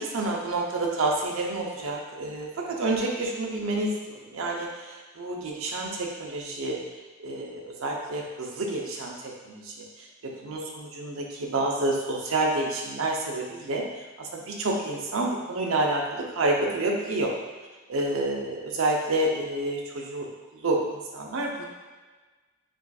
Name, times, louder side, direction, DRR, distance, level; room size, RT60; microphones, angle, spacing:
voice 1, 0.0-6.8 7.2-13.8 14.2-17.3 17.9-21.6, right 2 dB, 70° right, 0 dB, 0.6 m, -29 dB
5.9 x 2.5 x 2.3 m, 1.3 s
head